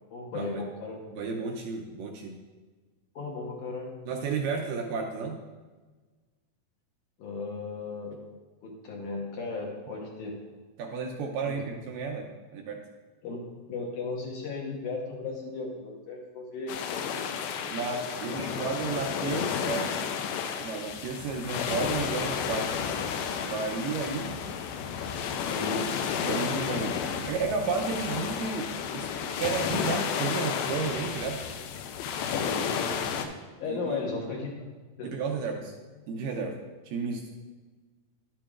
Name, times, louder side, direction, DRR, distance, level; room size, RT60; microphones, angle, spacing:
voice 1, 0.1-1.1 3.2-4.0 7.2-8.2 8.6-10.4 11.5-11.6 13.2-16.7 18.3-18.5 25.5-26.0 32.4-33.0 33.6-34.7 35.0-35.4, left 3 dB, 70° left, -2 dB, 2.1 m, -36 dB
voice 2, 1.1-2.4 4.1-5.4 10.8-12.3 12.5-12.8 17.7-19.9 20.6-22.7 23.4-24.4 26.2-27.0 27.3-31.4 33.7-34.0 35.0-35.7 36.1-36.6 36.9-37.4, right 4 dB, 75° right, 2 dB, 2.1 m, -32 dB
sound 1, 16.7-33.3, left 7 dB, 85° left, 2.5 m, -32 dB
10.5 x 8.7 x 2.4 m, 1.3 s
omnidirectional pair, 4.3 m